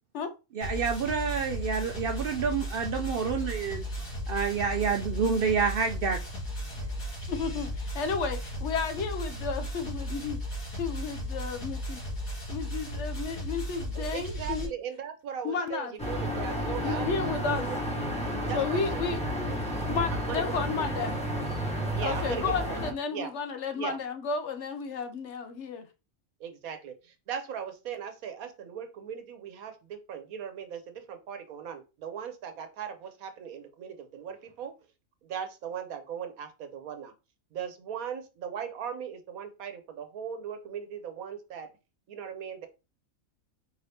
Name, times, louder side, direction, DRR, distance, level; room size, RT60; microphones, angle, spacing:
voice 1, 0.5-6.2, right 5 dB, 65° right, 0.5 m, -28 dB
sound 1, 0.6-14.7, equal, 80° left, 2.3 m, -35 dB
voice 2, 7.3-10.4 10.8-12.0 12.5-14.7 15.4-15.9 16.8-17.7 18.5-19.2 19.9-21.2 22.0-25.8, left 5 dB, 60° left, 0.9 m, -32 dB
voice 3, 13.9-17.8 18.5-19.6 20.1-21.1 21.9-22.8 23.1-23.3 23.7-24.0 26.4-34.7 35.2-37.1 37.5-41.7 42.1-42.7, right 8 dB, 85° right, 1.3 m, -39 dB
sound 2, 16.0-22.9, equal, 5° left, 1.0 m, -31 dB
4.7 x 2.7 x 3.4 m
omnidirectional pair, 1.4 m